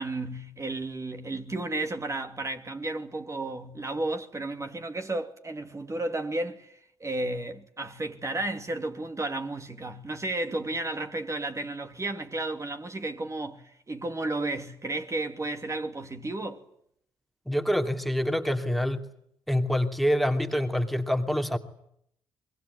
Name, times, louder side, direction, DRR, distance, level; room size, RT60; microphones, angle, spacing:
voice 1, 0.0-16.6, right 2 dB, 30° right, 2.9 m, -33 dB
voice 2, 17.5-19.0 19.5-21.6, equal, ahead, 2.8 m, -26 dB
25.5 x 22.0 x 9.6 m
supercardioid pair, 55°, 10 cm